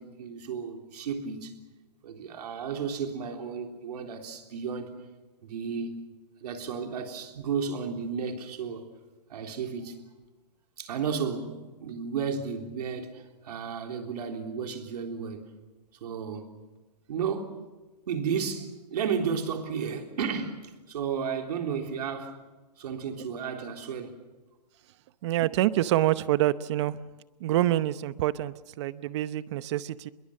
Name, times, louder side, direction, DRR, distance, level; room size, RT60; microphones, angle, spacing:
voice 1, 0.0-1.5 2.0-4.9 5.4-6.0 6.4-8.9 9.3-10.0 10.8-15.4 16.0-16.5 17.1-17.6 18.1-20.6 20.9-22.3 22.8-24.1, right 6 dB, 70° right, 3.6 m, -33 dB
voice 2, 25.2-27.0 27.4-30.1, right 14 dB, 45° right, 0.8 m, -26 dB
25.0 x 22.0 x 7.3 m
hypercardioid pair, 155°, 21 cm